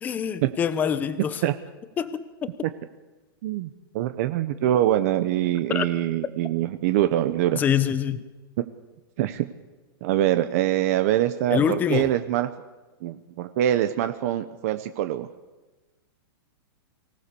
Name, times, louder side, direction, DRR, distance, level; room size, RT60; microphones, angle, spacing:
voice 1, 0.0-1.4 2.0-2.5 5.7-5.8 7.5-8.2 11.5-12.1, left 8 dB, 15° left, 13 dB, 0.8 m, -25 dB
voice 2, 3.4-7.6 8.6-8.7 9.2-9.5 10.0-12.5 13.0-15.3, right 12 dB, 40° right, 10 dB, 0.9 m, -24 dB
24.0 x 17.5 x 6.9 m, 1.2 s
supercardioid pair, 170°, 13 cm